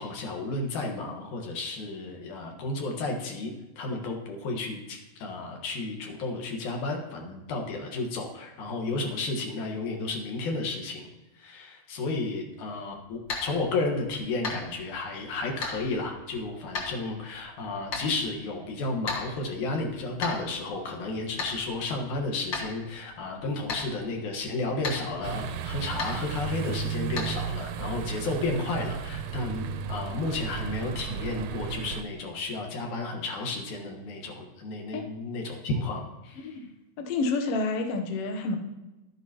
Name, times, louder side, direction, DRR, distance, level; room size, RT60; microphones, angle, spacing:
voice 1, 0.0-11.0 11.3-36.6, left 3 dB, 85° left, 1 dB, 2.9 m, -32 dB
sound 1, 12.9-27.5, left 3 dB, 45° left, 1.9 m, -39 dB
sound 2, 25.2-32.0, right 7 dB, 80° right, 1.5 m, -34 dB
voice 2, 37.0-38.6, left 3 dB, 65° left, 4 dB, 1.7 m, -29 dB
12.0 x 10.0 x 2.9 m, 1.1 s
omnidirectional pair, 3.4 m